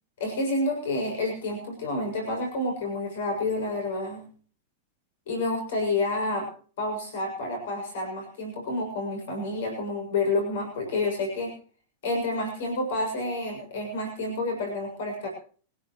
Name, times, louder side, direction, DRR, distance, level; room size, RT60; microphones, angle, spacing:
voice 1, 0.2-4.3 5.3-6.5 6.8-11.5 12.0-15.3, left 2 dB, 65° left, 3 dB, 7.0 m, -29 dB
24.0 x 16.0 x 3.1 m, 0.43 s
figure-of-eight pair, 95°, 0 cm